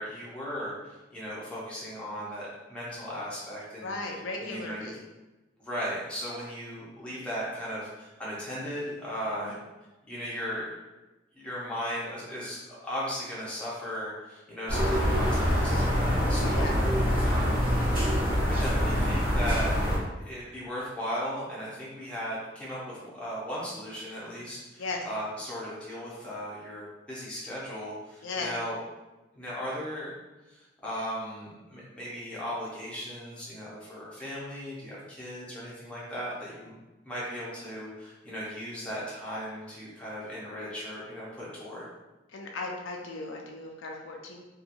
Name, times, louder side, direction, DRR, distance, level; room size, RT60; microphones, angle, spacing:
voice 1, 0.0-4.0 4.4-4.9 5.6-9.5 10.1-10.7 11.4-16.7 17.2-17.6 18.4-19.7 20.2-28.8 29.3-30.1 30.5-36.7 37.0-41.9, equal, 5° left, -8 dB, 0.7 m, -37 dB
voice 2, 3.8-5.0 9.4-9.6 16.5-16.8 17.0-17.3 24.8-25.1 28.2-28.5 42.3-44.4, left 3 dB, 85° left, 0 dB, 0.4 m, -36 dB
sound 1, 14.7-20.0, equal, 45° right, 1.2 m, -25 dB
2.8 x 2.3 x 2.5 m, 1.1 s
head